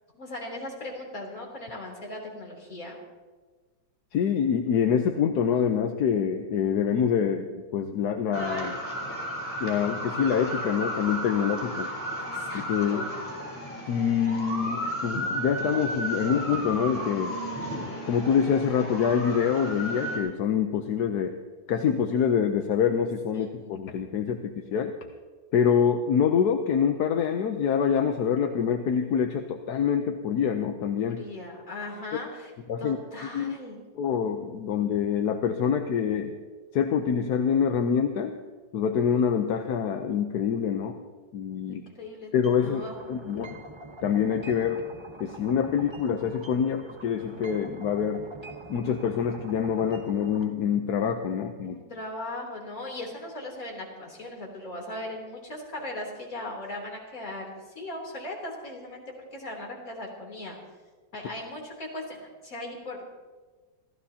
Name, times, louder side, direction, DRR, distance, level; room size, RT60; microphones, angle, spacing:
voice 1, 0.1-3.0 12.3-12.6 12.9-13.1 23.6-23.7 31.1-32.5 32.8-33.8 41.7-43.1 51.6-57.5 57.8-59.0 59.3-60.6 61.1-63.0, left 1 dB, 45° left, -2 dB, 3.7 m, -38 dB
voice 2, 4.1-8.8 9.6-11.9 12.5-13.0 13.9-17.4 18.1-21.4 21.7-24.9 25.5-31.2 32.7-33.0 33.3-33.6 33.9-36.3 36.7-38.4 38.7-41.0 41.3-41.8 42.3-42.8 43.1-43.5 44.0-44.9 45.2-48.3 48.7-51.8, left 7 dB, 65° left, 5 dB, 1.2 m, -26 dB
sound 1, 8.3-20.2, equal, 5° left, 3.6 m, -33 dB
sound 2, 42.4-50.4, right 2 dB, 20° right, 1.0 m, -44 dB
27.5 x 14.5 x 2.8 m, 1.4 s
omnidirectional pair, 2.0 m